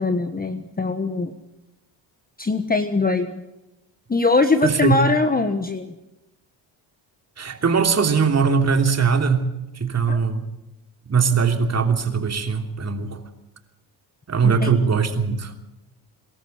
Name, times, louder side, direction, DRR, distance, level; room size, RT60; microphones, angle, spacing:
voice 1, 0.0-1.3 2.4-3.4 4.1-5.9 10.1-10.2 14.4-14.8, left 3 dB, 20° left, 9 dB, 1.3 m, -21 dB
voice 2, 4.6-5.1 7.4-9.5 9.7-10.4 11.1-13.2 14.3-15.5, right 5 dB, 35° right, 6 dB, 3.1 m, -20 dB
24.0 x 13.5 x 8.1 m, 0.95 s
cardioid pair, 95°, 44 cm